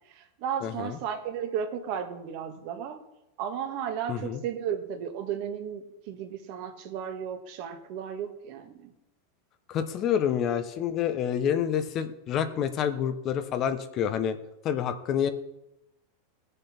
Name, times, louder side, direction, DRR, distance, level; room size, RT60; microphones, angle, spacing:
voice 1, 0.0-3.0 3.4-8.9, right 8 dB, 55° right, 6 dB, 1.7 m, -34 dB
voice 2, 0.6-1.0 4.1-4.4 9.7-14.4 14.6-15.3, left 9 dB, 40° left, 10 dB, 1.0 m, -28 dB
17.0 x 6.8 x 4.4 m, 0.86 s
hypercardioid pair, 115°, 0 cm